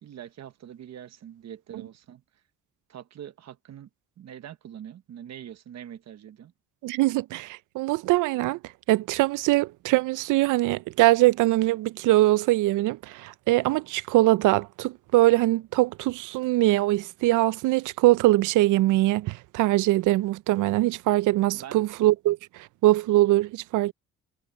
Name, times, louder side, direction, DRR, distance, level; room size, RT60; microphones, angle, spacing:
voice 1, 0.0-2.2 2.9-3.9 4.2-6.5 21.5-21.8, right 10 dB, 60° right, 1.2 m, -43 dB
voice 2, 6.8-8.6 8.9-23.9, right 17 dB, 85° right, 0.5 m, -22 dB
cardioid pair, 90°, 30 cm